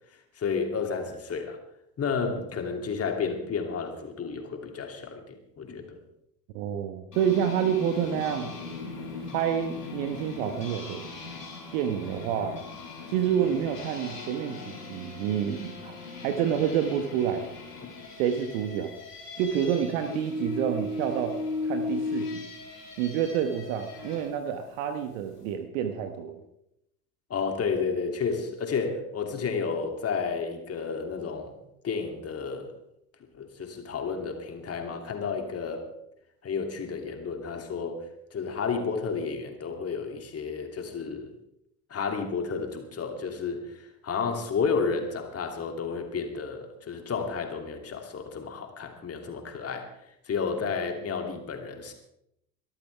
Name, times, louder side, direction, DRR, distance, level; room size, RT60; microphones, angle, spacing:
voice 1, 0.4-1.6 2.0-6.0 17.8-17.9 27.3-31.6 31.8-32.7 33.4-35.9 36.4-38.0 38.3-41.3 41.9-49.9 50.3-51.9, left 5 dB, 30° left, 4 dB, 2.8 m, -31 dB
voice 2, 6.5-8.5 9.3-11.0 11.7-12.6 13.1-17.5 18.2-18.9 19.4-22.5 23.0-26.4, right 8 dB, 60° right, 8 dB, 1.4 m, -28 dB
sound 1, 7.1-24.3, left 3 dB, 90° left, 3.9 m, -38 dB
23.0 x 13.5 x 3.5 m, 0.79 s
figure-of-eight pair, 70°, 46 cm